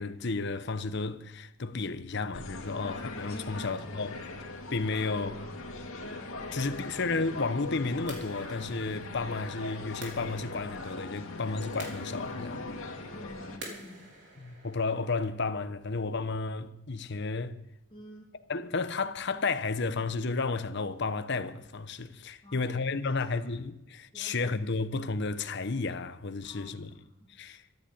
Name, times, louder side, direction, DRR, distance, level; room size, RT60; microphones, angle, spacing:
voice 1, 0.0-4.2 4.7-5.4 6.5-12.6 14.4-17.6 18.5-26.9 27.3-27.6, left 3 dB, 55° left, 0.9 m, -32 dB
sound 1, 2.3-13.6, left 2 dB, 90° left, 2.5 m, -40 dB
voice 2, 3.3-3.6 6.7-6.8 13.1-14.1 17.9-18.3 22.4-23.4 24.1-24.7 26.4-27.3, left 1 dB, 25° left, 2.8 m, -49 dB
sound 2, 7.1-15.4, right 2 dB, 60° right, 4.1 m, -50 dB
14.0 x 10.5 x 8.4 m
head